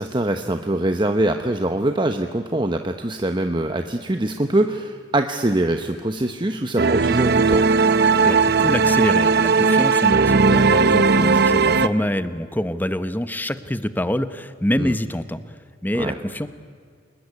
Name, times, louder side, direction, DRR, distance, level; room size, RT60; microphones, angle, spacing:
voice 1, 0.0-7.7 14.8-14.9 16.0-16.2, right 1 dB, 25° right, 6 dB, 1.0 m, -23 dB
sound 1, 6.8-11.9, right 4 dB, 55° right, 0.8 m, -17 dB
voice 2, 8.2-16.5, left 1 dB, 10° left, 12 dB, 1.0 m, -26 dB
29.0 x 20.0 x 9.9 m, 2.1 s
head